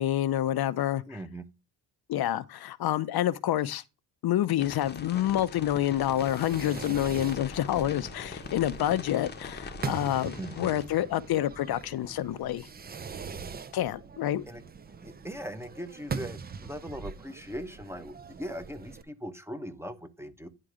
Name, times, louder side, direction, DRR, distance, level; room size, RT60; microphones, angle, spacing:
voice 1, 0.0-1.2 2.1-3.8 4.2-12.7 13.7-14.4, left 12 dB, 65° left, 0.7 m, -28 dB
voice 2, 1.1-1.4 10.4-10.7 14.5-14.6 15.0-20.5, equal, 5° right, 0.9 m, -40 dB
sound 1, 4.6-10.9, left 5 dB, 25° left, 0.9 m, -42 dB
Fireworks, 6.0-19.0, right 5 dB, 25° right, 0.5 m, -42 dB
10.0 x 3.8 x 5.0 m
cardioid pair, 120°, 39 cm